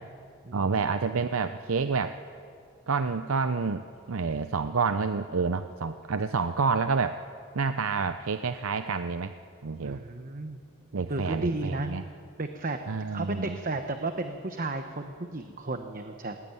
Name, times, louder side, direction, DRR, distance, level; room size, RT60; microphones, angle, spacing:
voice 1, 0.5-2.2 2.9-3.8 4.1-7.2 7.5-9.3 9.6-10.0 10.9-12.0 12.9-13.6, right 5 dB, 85° right, 10 dB, 0.7 m, -28 dB
voice 2, 9.8-10.6 11.1-11.9 12.4-12.8 13.1-16.4, right 2 dB, 40° right, 6 dB, 1.0 m, -33 dB
19.5 x 19.5 x 9.7 m, 2.4 s
head